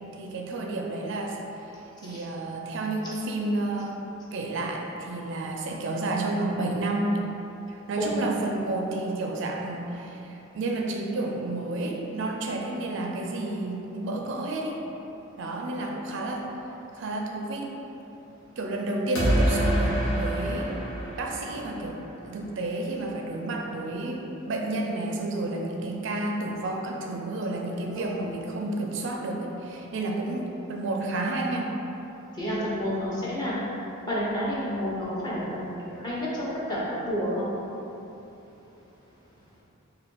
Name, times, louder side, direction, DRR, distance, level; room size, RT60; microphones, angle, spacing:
voice 1, 0.1-1.4 2.0-4.0 4.3-7.2 7.7-14.8 15.4-16.5 16.9-17.7 18.6-20.7 21.2-22.0 22.2-31.7, right 2 dB, 55° right, 1 dB, 0.4 m, -31 dB
sound 1, 19.2-22.1, equal, 80° left, 1.1 m, -26 dB
voice 2, 27.9-28.3 32.4-33.6 34.0-37.5, equal, 20° left, -8 dB, 0.9 m, -30 dB
4.2 x 2.6 x 4.5 m, 3.0 s
head